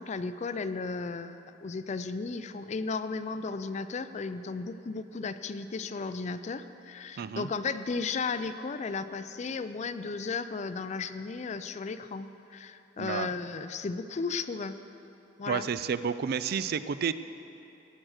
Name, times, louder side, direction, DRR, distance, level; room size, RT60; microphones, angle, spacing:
voice 1, 0.0-14.7 15.4-15.7, left 4 dB, 40° left, 12 dB, 0.4 m, -35 dB
voice 2, 7.2-7.5 13.0-13.3 15.5-17.1, right 6 dB, 55° right, 14 dB, 0.4 m, -30 dB
17.0 x 6.2 x 6.4 m, 2.9 s
head